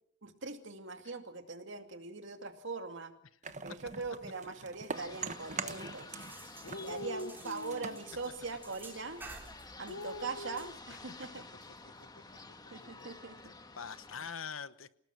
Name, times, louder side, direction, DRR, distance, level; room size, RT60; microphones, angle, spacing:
voice 1, 0.2-3.1 3.6-6.1 6.8-9.2 9.8-11.4 12.7-13.4, right 3 dB, 65° right, 6 dB, 2.4 m, -41 dB
sound 1, 3.4-6.4 6.6-9.0, right 5 dB, 35° right, 1.2 m, -43 dB
sound 2, 4.9-14.3, left 3 dB, 20° left, 1.7 m, -51 dB
sound 3, 6.2-13.2, right 3 dB, 10° right, 4.1 m, -54 dB
voice 2, 6.4-8.0 9.8-11.0 13.4-14.9, left 3 dB, 85° left, 14 dB, 1.1 m, -44 dB
27.5 x 18.5 x 6.1 m, 0.63 s
head